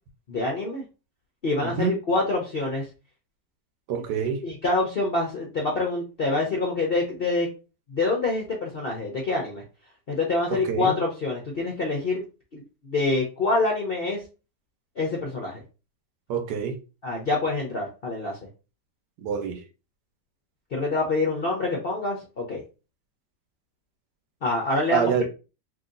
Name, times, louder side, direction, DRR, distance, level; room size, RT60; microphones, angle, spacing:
voice 1, 0.3-0.8 1.4-2.9 4.4-7.5 7.9-9.6 10.1-12.2 12.5-14.2 15.0-15.6 17.0-18.4 20.7-22.6 24.4-25.2, left 2 dB, 55° left, 0.6 m, -26 dB
voice 2, 3.9-4.4 10.7-11.0 16.3-16.7 19.2-19.6 24.9-25.2, right 7 dB, 75° right, 1.2 m, -26 dB
3.0 x 2.7 x 3.7 m
omnidirectional pair, 1.9 m